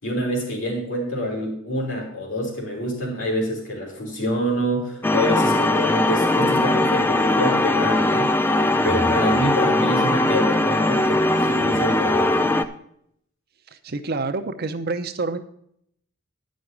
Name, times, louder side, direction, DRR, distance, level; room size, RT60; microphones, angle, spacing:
voice 1, 0.0-8.3 8.8-12.5, equal, 70° left, -1 dB, 3.8 m, -26 dB
sound 1, 5.0-12.7, left 2 dB, 10° left, 0.4 m, -20 dB
voice 2, 13.7-15.4, right 3 dB, 50° right, 9 dB, 0.6 m, -27 dB
9.9 x 6.3 x 6.9 m, 0.71 s
head